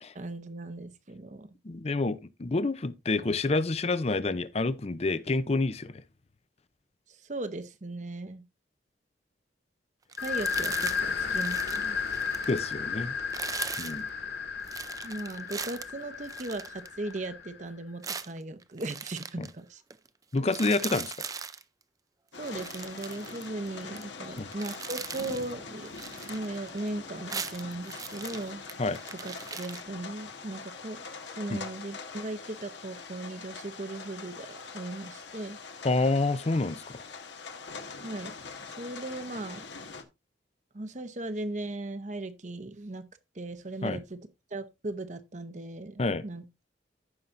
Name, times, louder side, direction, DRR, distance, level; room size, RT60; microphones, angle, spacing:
voice 1, 0.1-1.6 7.2-8.4 10.2-12.0 15.0-19.8 22.4-25.9 26.3-28.6 29.2-31.0 31.4-35.6 38.0-38.4 38.7-39.7 40.7-43.1 43.3-44.2 44.5-46.4, right 2 dB, 40° right, 0.9 m, -38 dB
voice 2, 1.6-6.0 12.5-13.1 13.8-14.1 19.4-19.5 20.3-21.3 24.4-24.5 28.8-29.0 31.5-31.6 35.8-37.0 43.8-44.0 46.0-46.2, left 3 dB, 35° left, 0.5 m, -28 dB
sound 1, 10.1-11.0 11.3-12.7 13.2-14.0 14.7-17.3 18.0-19.5 19.9-20.1 20.3-21.6 22.3-24.0 24.4-25.5 25.8-26.9 27.2-29.8, right 6 dB, 20° right, 0.4 m, -39 dB
sound 2, 10.2-17.6, left 6 dB, 60° left, 2.1 m, -33 dB
sound 3, 22.3-40.0, left 4 dB, 85° left, 1.4 m, -43 dB
14.5 x 5.7 x 2.6 m
head